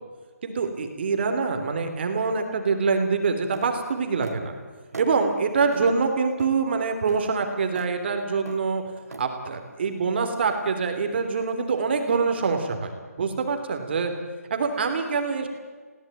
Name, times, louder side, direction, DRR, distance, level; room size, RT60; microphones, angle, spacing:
voice 1, 0.4-4.5 4.9-8.8 9.2-12.9 13.2-14.1 14.5-15.5, right 4 dB, 40° right, 6 dB, 3.4 m, -25 dB
sound 1, 3.5-3.7 4.2-4.4 4.9-5.1 5.7-5.9 6.4-6.6 7.1-7.2 7.8-7.9 8.5-8.6 9.1-9.3, right 3 dB, 75° right, 2.8 m, -39 dB
21.0 x 17.5 x 9.3 m, 1.5 s
figure-of-eight pair, 160°, 9 cm